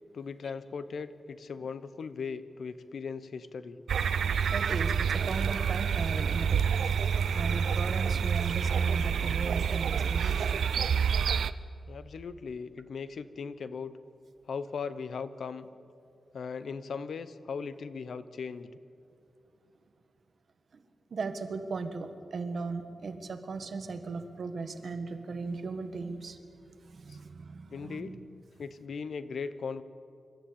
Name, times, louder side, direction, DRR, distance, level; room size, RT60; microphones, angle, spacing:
voice 1, 0.1-3.8 11.9-14.0 14.5-15.7 16.3-18.7 27.7-28.2 28.6-29.8, left 5 dB, 65° left, 13 dB, 0.8 m, -38 dB
sound 1, 3.9-11.5, right 7 dB, 90° right, 0.5 m, -28 dB
voice 2, 4.4-6.9 7.3-10.6 20.7-20.8 21.1-26.4 26.7-28.3, right 4 dB, 50° right, 8 dB, 1.3 m, -37 dB
26.0 x 13.0 x 8.5 m, 2.6 s
wide cardioid pair, 175°, 0 cm